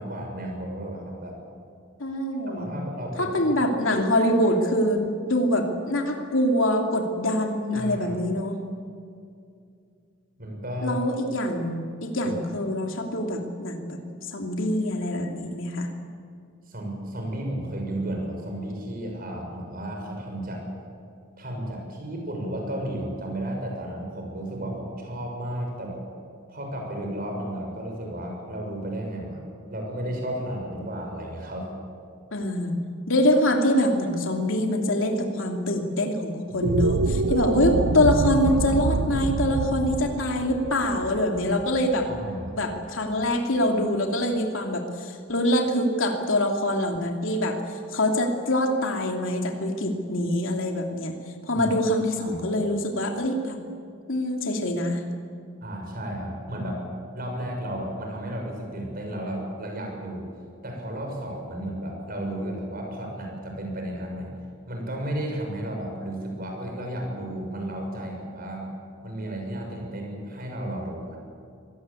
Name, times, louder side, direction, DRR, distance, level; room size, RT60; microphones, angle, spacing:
voice 1, 0.0-1.4 2.5-3.6 7.7-8.2 10.4-11.0 16.7-20.6 21.4-26.0 26.5-29.4 29.7-31.9 42.1-42.5 51.5-51.7 52.1-52.4 55.6-56.8 57.1-60.3 60.6-64.3 64.7-68.7 69.0-71.2, right 1 dB, 45° right, 1 dB, 6.6 m, -33 dB
voice 2, 2.0-2.7 3.2-8.6 10.8-15.9 32.3-32.8 33.1-42.1 42.5-47.6 47.9-53.6 54.1-55.0, left 1 dB, 70° left, 2 dB, 2.9 m, -24 dB
sound 1, 36.5-42.9, right 3 dB, 85° right, 0.8 m, -26 dB
25.5 x 19.0 x 8.5 m, 2.4 s
head